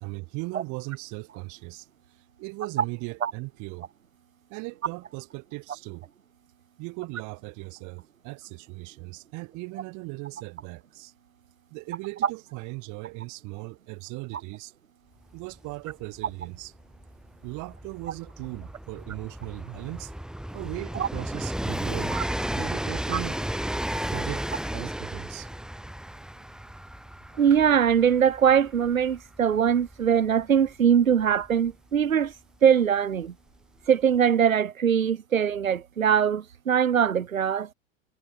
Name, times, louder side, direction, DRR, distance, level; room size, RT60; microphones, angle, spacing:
voice 1, 0.0-1.9 2.4-3.9 4.5-6.1 6.8-11.1 11.7-14.7 15.3-16.7 17.4-20.1 20.5-22.2 22.5-23.4 24.1-24.5 24.7-25.5, right 27 dB, 45° right, 3.6 m, -38 dB
Train, 15.3-15.4 15.6-32.2 33.2-33.3, right 1 dB, ahead, 1.9 m, -34 dB
voice 2, 27.4-32.3 32.6-33.3 33.9-37.7, right 8 dB, 85° right, 1.7 m, -22 dB
hypercardioid pair, 95°, 39 cm